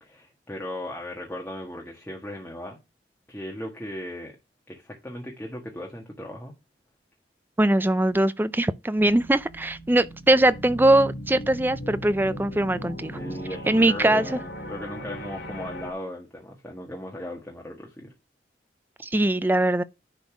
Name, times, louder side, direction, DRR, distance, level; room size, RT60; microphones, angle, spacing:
voice 1, 0.0-2.8 3.3-4.4 4.7-6.6 13.1-18.1, left 1 dB, 10° left, 1.5 m, -37 dB
voice 2, 7.6-13.2 13.7-14.3 19.0-19.8, right 1 dB, 10° right, 0.4 m, -21 dB
sound 1, 9.0-15.9, equal, 85° left, 2.3 m, -38 dB
10.5 x 4.1 x 4.8 m
head